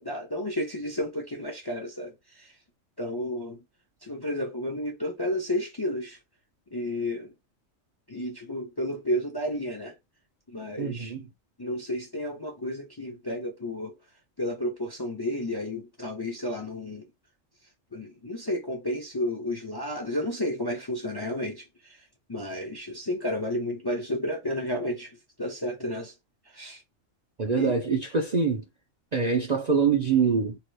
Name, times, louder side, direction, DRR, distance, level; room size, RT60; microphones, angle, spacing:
voice 1, 0.0-2.5 3.0-3.6 4.0-6.2 6.7-7.3 8.1-10.0 10.5-11.1 11.6-13.9 14.4-17.0 17.9-22.0 22.3-26.1 26.5-26.8 27.5-27.8, left 1 dB, 25° left, 0.5 m, -32 dB
voice 2, 10.8-11.2 27.4-28.6 29.1-30.6, right 5 dB, 50° right, 0.5 m, -24 dB
2.8 x 2.4 x 3.2 m
omnidirectional pair, 1.3 m